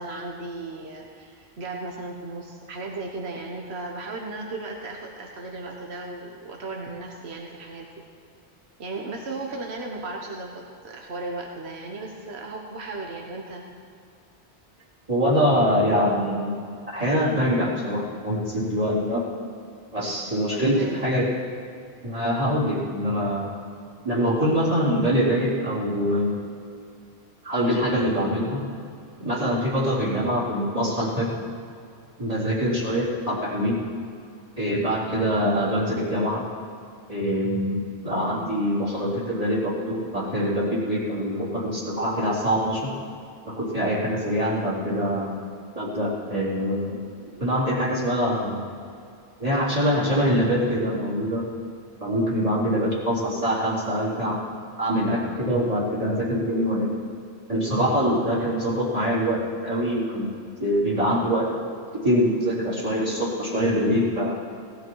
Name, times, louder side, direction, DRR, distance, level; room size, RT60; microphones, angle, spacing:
voice 1, 0.0-7.9 8.8-13.7 20.6-21.0 52.8-53.1, right 3 dB, 75° right, 0 dB, 1.5 m, -35 dB
voice 2, 15.1-16.5 16.9-19.2 19.9-21.3 22.0-23.5 24.0-26.3 27.4-28.6 29.2-31.3 32.2-33.8 34.6-36.5 37.1-42.9 43.5-45.3 45.8-47.0 47.4-48.6 49.4-51.5 52.0-54.4 54.8-56.9 57.5-60.3 60.6-61.5 62.0-64.3, equal, 35° right, -7 dB, 3.9 m, -24 dB
18.0 x 13.0 x 4.7 m, 2.5 s
omnidirectional pair, 1.1 m